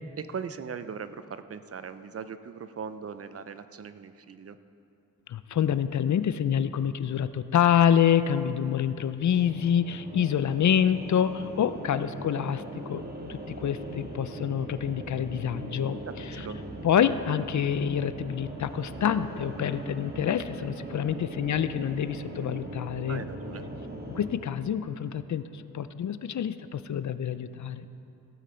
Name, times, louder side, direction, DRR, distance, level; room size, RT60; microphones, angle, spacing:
voice 1, 0.2-4.6 16.1-16.6 23.1-23.6, right 6 dB, 45° right, 12 dB, 0.4 m, -39 dB
voice 2, 5.3-16.0 16.8-23.2 24.1-27.9, left 9 dB, 60° left, 13 dB, 0.4 m, -27 dB
sound 1, 9.3-24.3, right 1 dB, 30° right, 1.2 m, -40 dB
15.5 x 9.0 x 4.3 m, 2.7 s
wide cardioid pair, 120°, 34 cm